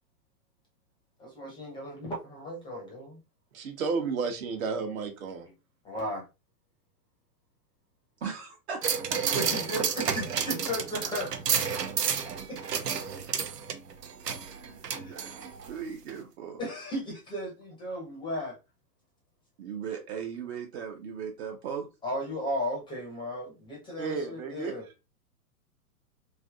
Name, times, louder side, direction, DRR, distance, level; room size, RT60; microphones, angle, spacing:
voice 1, 1.2-3.2 5.8-6.2 9.3-11.6 12.2-12.6 14.9-15.2 16.6-18.6 22.0-24.9, equal, 10° left, -2 dB, 0.5 m, -35 dB
voice 2, 3.5-5.5 24.0-24.7, right 5 dB, 60° right, 5 dB, 0.9 m, -32 dB
voice 3, 8.2-9.2 11.1-11.3 11.7-11.9 14.4-14.8 15.1-16.6 19.6-21.9, right 7 dB, 45° right, 3 dB, 0.6 m, -38 dB
sound 1, 8.8-15.7 16.1-16.2, right 7 dB, 85° right, 0.7 m, -31 dB
3.3 x 2.6 x 2.3 m, 0.27 s
figure-of-eight pair, 110°, 47 cm